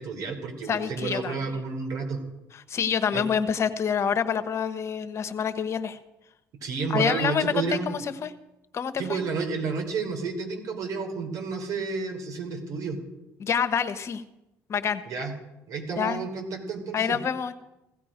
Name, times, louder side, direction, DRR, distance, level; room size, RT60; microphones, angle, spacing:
voice 1, 0.0-2.2 3.1-3.2 6.6-7.9 9.0-13.0 15.1-15.3 15.7-17.2, right 4 dB, 65° right, 3 dB, 4.0 m, -31 dB
voice 2, 0.7-1.3 2.7-6.0 6.9-8.3 8.7-9.2 13.4-14.2 14.7-15.0 16.0-16.2 16.9-17.6, left 7 dB, 45° left, 11 dB, 1.1 m, -27 dB
16.5 x 14.5 x 5.1 m, 0.94 s
supercardioid pair, 85°, 6 cm